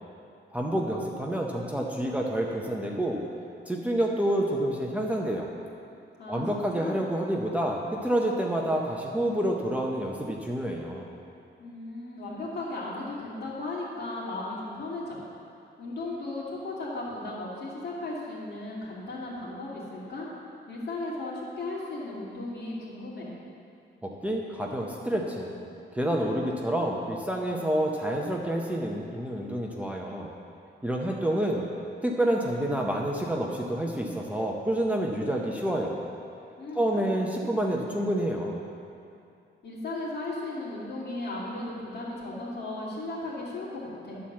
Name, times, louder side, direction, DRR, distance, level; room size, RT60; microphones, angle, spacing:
voice 1, 0.5-3.2 3.7-5.5 6.3-11.1 24.0-25.5 25.9-30.3 30.8-31.7 32.0-35.9 36.7-38.6, right 1 dB, 5° right, -2 dB, 0.6 m, -28 dB
voice 2, 6.2-7.0 11.6-15.2 15.8-20.3 20.7-23.3 36.6-37.0 39.6-44.2, left 2 dB, 60° left, -6 dB, 2.5 m, -36 dB
11.0 x 4.3 x 7.4 m, 2.6 s
wide cardioid pair, 155°, 19 cm